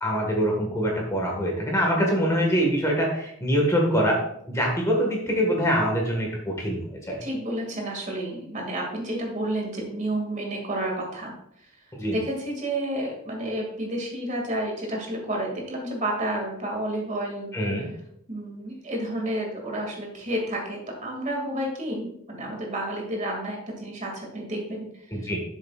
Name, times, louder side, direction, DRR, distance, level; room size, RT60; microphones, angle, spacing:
voice 1, 0.0-7.2 11.9-12.2 17.5-17.9 25.1-25.4, equal, 15° left, 0 dB, 1.5 m, -24 dB
voice 2, 7.2-11.3 12.1-17.5 18.3-25.2, right 1 dB, 35° right, 0 dB, 2.2 m, -30 dB
11.5 x 7.1 x 2.4 m, 0.73 s
head